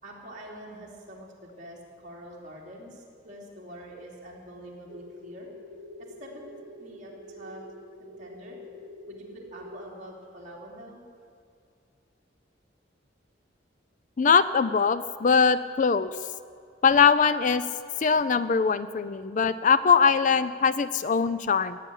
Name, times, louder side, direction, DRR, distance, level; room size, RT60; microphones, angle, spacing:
voice 1, 0.0-5.5 6.0-7.6 8.0-8.6 9.1-11.0, equal, 40° right, -3 dB, 3.1 m, -45 dB
sound 1, 4.9-9.9, left 1 dB, 60° right, 1.9 m, -46 dB
voice 2, 14.2-16.1 16.8-17.6 18.0-21.8, left 6 dB, 40° left, 14 dB, 0.4 m, -22 dB
15.5 x 8.4 x 10.0 m, 2.3 s
head